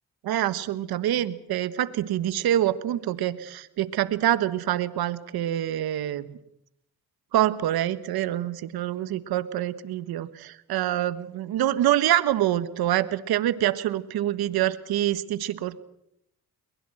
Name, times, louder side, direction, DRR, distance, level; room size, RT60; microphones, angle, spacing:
voice 1, 0.2-6.2 7.3-15.8, right 12 dB, 85° right, 14 dB, 1.4 m, -26 dB
22.5 x 21.0 x 7.9 m, 0.76 s
cardioid pair, 70°, 37 cm